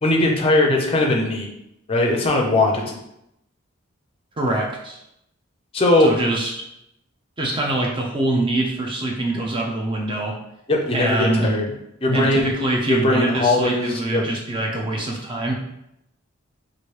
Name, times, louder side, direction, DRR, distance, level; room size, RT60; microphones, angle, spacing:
voice 1, 0.0-1.5 1.9-3.0 5.7-6.1 10.7-11.7 12.0-12.5 12.9-14.3, left 2 dB, 25° left, 1 dB, 0.5 m, -19 dB
voice 2, 4.4-5.0 6.0-6.7 7.4-10.4 10.9-11.5 12.1-15.5, right 2 dB, 25° right, 0 dB, 0.5 m, -24 dB
3.1 x 2.5 x 3.1 m, 0.82 s
head